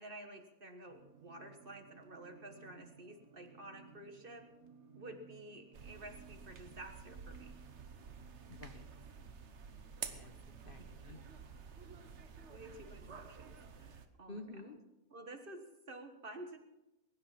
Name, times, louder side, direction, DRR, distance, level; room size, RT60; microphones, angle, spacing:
voice 1, 0.0-4.4 4.9-7.5 10.8-10.9 12.5-14.5 15.1-16.6, right 1 dB, 40° right, 6 dB, 1.5 m, -51 dB
sound 1, 0.9-9.1, right 6 dB, 90° right, 1.9 m, -60 dB
sound 2, 5.7-14.1, right 6 dB, 55° right, 1.3 m, -50 dB
voice 2, 8.5-8.9 10.1-11.2 13.0-13.1 14.3-14.8, left 3 dB, 45° left, 7 dB, 1.1 m, -51 dB
21.0 x 9.7 x 5.8 m, 0.99 s
omnidirectional pair, 1.5 m